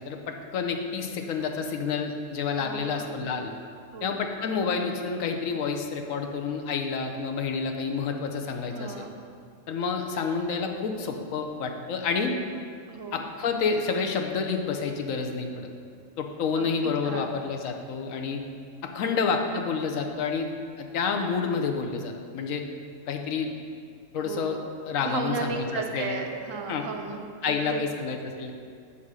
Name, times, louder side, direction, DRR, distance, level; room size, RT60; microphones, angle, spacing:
voice 1, 0.0-3.5 4.0-9.1 9.7-12.3 13.1-15.7 16.2-18.4 18.9-20.5 20.8-22.6 23.1-23.5 24.1-24.6 24.8-26.2 26.7-26.9 27.4-28.5, left 5 dB, 85° left, 4 dB, 1.1 m, -29 dB
voice 2, 2.6-3.1 3.9-4.2 8.7-9.2 12.9-13.2 16.6-17.4 19.0-19.4 24.2-24.7 25.0-28.0, right 5 dB, 80° right, 3 dB, 1.1 m, -35 dB
7.3 x 4.2 x 6.1 m, 2.2 s
omnidirectional pair, 1.4 m